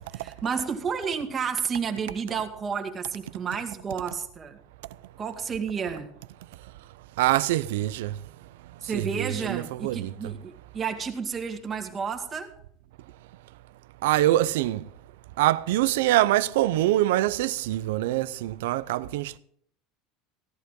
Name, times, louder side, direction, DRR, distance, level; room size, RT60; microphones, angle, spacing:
voice 1, 0.1-4.6 5.2-6.1 8.8-12.5, right 6 dB, 25° right, 2.2 m, -31 dB
voice 2, 7.2-8.2 8.8-10.3 14.0-14.9 15.4-19.4, right 15 dB, 85° right, 0.6 m, -24 dB
16.5 x 11.5 x 3.8 m
supercardioid pair, 120°, 0 cm